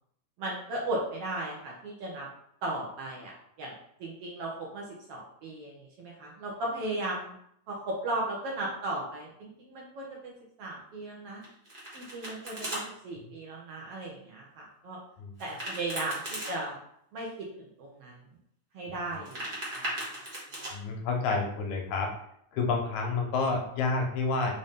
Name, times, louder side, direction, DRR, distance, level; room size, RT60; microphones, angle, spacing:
voice 1, 0.4-2.3 2.6-3.3 3.6-3.7 4.0-7.3 7.7-11.4 11.9-15.0 15.4-16.8 17.1-18.2 18.7-19.5 19.7-20.2, right 2 dB, 70° right, -2 dB, 1.6 m, -36 dB
Domestic sounds home sounds, 11.4-12.8 15.4-16.5 19.1-20.7, right 1 dB, 55° right, 0.5 m, -37 dB
voice 2, 20.7-22.1 22.5-24.5, left 4 dB, 80° left, 2 dB, 2.1 m, -29 dB
5.3 x 2.6 x 3.5 m, 0.71 s
omnidirectional pair, 3.3 m